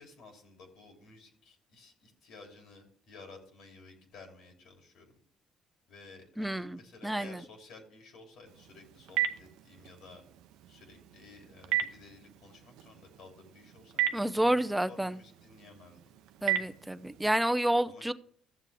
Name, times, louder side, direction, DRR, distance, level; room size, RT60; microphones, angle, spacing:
voice 1, 0.0-5.1 5.9-10.2 10.7-14.6 14.9-16.1 16.5-16.7 17.8-18.1, left 3 dB, 75° left, 2 dB, 3.0 m, -54 dB
voice 2, 6.4-7.4 14.1-15.2 16.4-18.1, right 1 dB, 5° right, 13 dB, 0.7 m, -29 dB
Telephone, 8.5-17.3, right 11 dB, 85° right, 0.7 m, -37 dB
13.5 x 7.4 x 3.4 m, 0.62 s
supercardioid pair, 75°, 0 cm